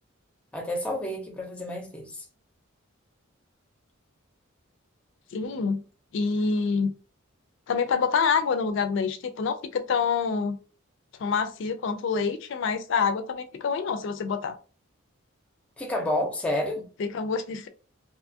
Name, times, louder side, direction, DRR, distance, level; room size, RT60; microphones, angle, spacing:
voice 1, 0.5-2.2 15.8-16.9, left 1 dB, 5° left, 0.5 m, -30 dB
voice 2, 5.3-5.8 6.1-6.9 7.7-10.6 11.2-14.6 17.1-17.7, left 5 dB, 60° left, 0.3 m, -26 dB
2.7 x 2.2 x 2.6 m
head